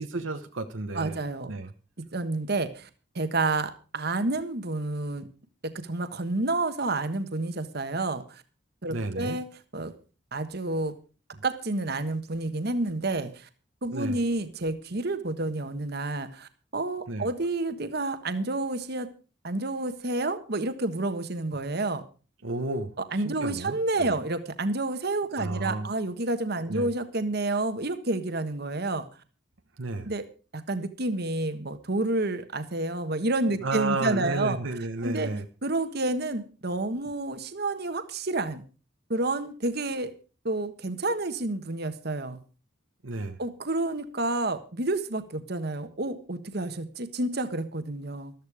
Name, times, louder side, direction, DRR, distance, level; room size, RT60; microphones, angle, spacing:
voice 1, 0.0-1.2 1.5-1.7 8.9-9.4 13.9-14.2 17.1-17.3 22.4-24.1 25.4-25.9 26.7-26.9 29.8-30.1 33.6-35.4 43.0-43.4, right 2 dB, 75° right, 7 dB, 1.2 m, -32 dB
voice 2, 0.9-1.5 2.0-2.9 3.1-5.3 5.6-8.4 8.8-9.5 9.7-9.9 10.3-11.0 11.4-13.5 13.8-19.1 19.4-22.0 23.1-29.0 30.0-30.2 30.5-34.6 35.0-35.3 35.6-38.6 39.1-40.1 40.4-42.4 43.4-48.3, right 2 dB, 55° right, 10 dB, 1.4 m, -29 dB
14.0 x 13.0 x 4.9 m, 0.36 s
head